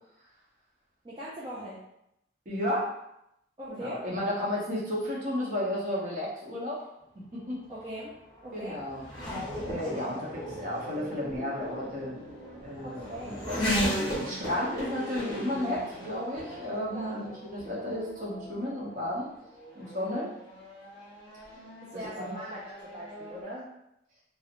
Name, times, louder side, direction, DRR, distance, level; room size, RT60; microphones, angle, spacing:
voice 1, 1.0-1.8 3.6-4.0 7.7-8.2 8.4-8.8 9.9-10.2 12.8-13.4 16.9-17.2 21.9-23.7, equal, 25° right, -7 dB, 0.4 m, -40 dB
voice 2, 2.5-2.9 3.7-6.8 7.2-7.6 8.5-9.0 9.4-12.1 12.6-19.3 19.7-20.3 21.9-22.4, left 1 dB, 45° right, -5 dB, 0.8 m, -33 dB
Race car auto racing / Accelerating revving vroom, 7.2-23.4, equal, 20° left, 1.3 m, -37 dB
2.9 x 2.0 x 2.5 m, 0.81 s
head